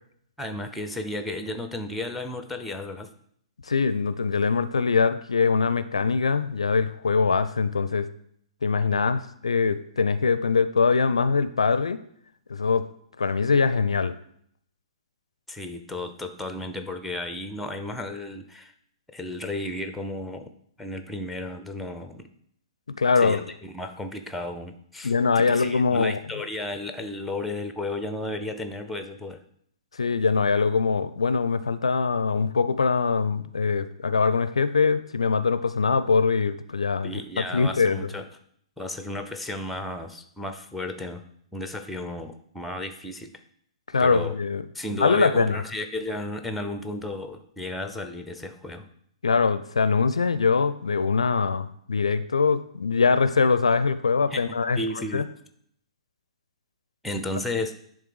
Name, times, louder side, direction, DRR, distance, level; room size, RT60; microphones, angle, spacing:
voice 1, 0.4-3.1 15.5-18.7 19.1-20.5 20.8-22.3 23.2-29.4 37.0-38.3 38.8-41.2 41.5-43.3 44.0-44.4 44.7-48.9 54.3-54.4 54.8-55.3 57.0-57.7, left 2 dB, ahead, 8 dB, 0.6 m, -33 dB
voice 2, 3.6-8.1 8.6-12.0 12.5-12.9 13.2-14.1 23.0-23.4 25.0-26.2 29.9-37.2 37.5-38.1 43.9-44.6 45.0-45.6 49.2-54.8 55.1-55.2, left 5 dB, 70° left, 14 dB, 0.4 m, -23 dB
10.0 x 3.6 x 4.8 m, 0.67 s
figure-of-eight pair, 115°, 3 cm